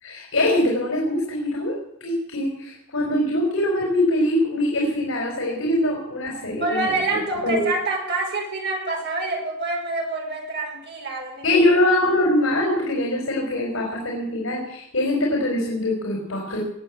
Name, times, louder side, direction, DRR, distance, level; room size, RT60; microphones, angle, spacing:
voice 1, 0.0-7.6 11.4-16.6, left 1 dB, 80° left, -1 dB, 4.2 m, -23 dB
voice 2, 6.6-11.6, right 2 dB, 55° right, 1 dB, 4.9 m, -27 dB
21.0 x 8.1 x 8.6 m, 0.74 s
head